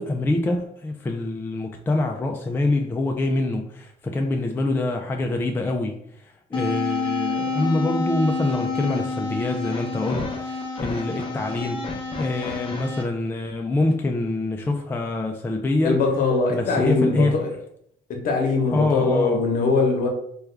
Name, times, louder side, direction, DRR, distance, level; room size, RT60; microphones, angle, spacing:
voice 1, 0.0-11.8 12.2-16.0 16.5-17.4 18.7-19.4, left 2 dB, 15° left, 0.3 m, -25 dB
sound 1, 6.5-13.0, left 3 dB, 30° left, 0.7 m, -28 dB
voice 2, 15.8-17.5 18.1-20.1, left 3 dB, 55° left, 0.9 m, -21 dB
3.4 x 2.3 x 3.3 m
cardioid pair, 110°, 17 cm